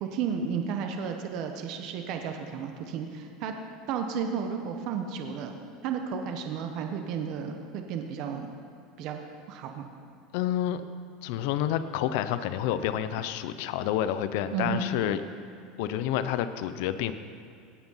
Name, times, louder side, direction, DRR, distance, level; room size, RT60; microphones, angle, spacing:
voice 1, 0.0-3.5 3.9-8.5 9.0-9.9 14.5-14.8, right 6 dB, 50° right, 5 dB, 0.9 m, -33 dB
voice 2, 10.3-10.8 11.2-15.2 15.8-17.1, left 11 dB, 65° left, 11 dB, 0.5 m, -29 dB
18.0 x 6.0 x 5.5 m, 2.5 s
supercardioid pair, 155°, 0 cm